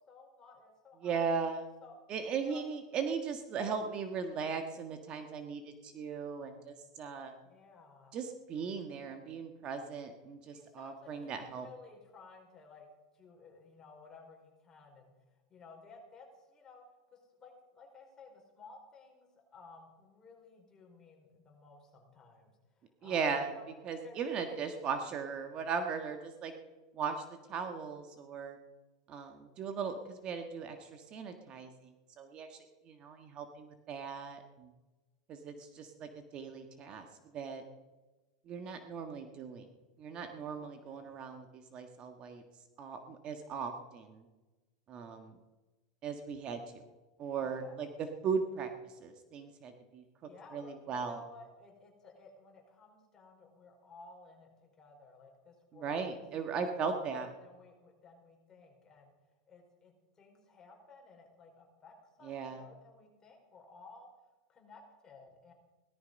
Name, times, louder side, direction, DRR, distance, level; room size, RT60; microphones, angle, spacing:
voice 1, 0.0-1.3 1.8-2.0 2.5-2.7 7.4-8.2 10.5-12.9 13.1-15.1 15.5-16.8 17.1-23.7 24.0-24.6 40.5-41.1 47.4-47.9 50.2-56.2 56.8-59.1 59.5-64.1 64.5-65.5, left 3 dB, 20° left, 0 dB, 5.0 m, -56 dB
voice 2, 1.0-1.6 2.1-7.3 8.1-11.7 23.0-23.5 23.8-26.5 26.9-28.6 29.1-34.7 35.3-37.1 37.3-37.6 38.4-39.7 40.0-42.4 42.8-44.2 44.9-45.4 46.0-46.8 47.2-50.0 50.5-51.2 55.7-57.3 62.2-62.6, right 5 dB, 35° right, 6 dB, 1.6 m, -38 dB
17.5 x 13.0 x 5.4 m, 1.2 s
supercardioid pair, 130°, 3 cm